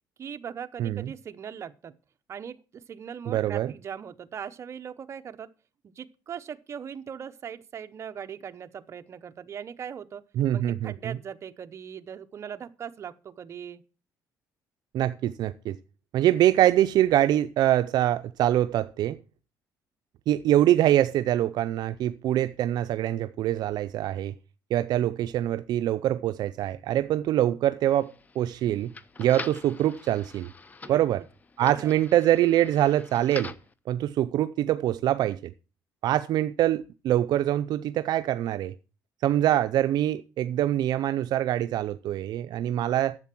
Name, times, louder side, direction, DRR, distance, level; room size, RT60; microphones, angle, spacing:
voice 1, 0.2-2.0 2.3-5.5 5.8-10.2 10.5-13.8 30.8-31.0 31.6-31.9, right 8 dB, 40° right, 0.8 m, -40 dB
voice 2, 0.8-1.1 3.3-3.7 10.4-11.2 14.9-15.8 16.1-19.2 20.3-24.3 24.7-28.9 29.2-30.5 30.9-31.2 31.6-33.5 33.9-35.5 36.0-38.7 39.2-43.2, right 12 dB, 65° right, 0.5 m, -24 dB
sound 1, 27.9-33.7, left 4 dB, 20° left, 0.6 m, -44 dB
11.0 x 7.6 x 6.0 m
cardioid pair, 140°, 7 cm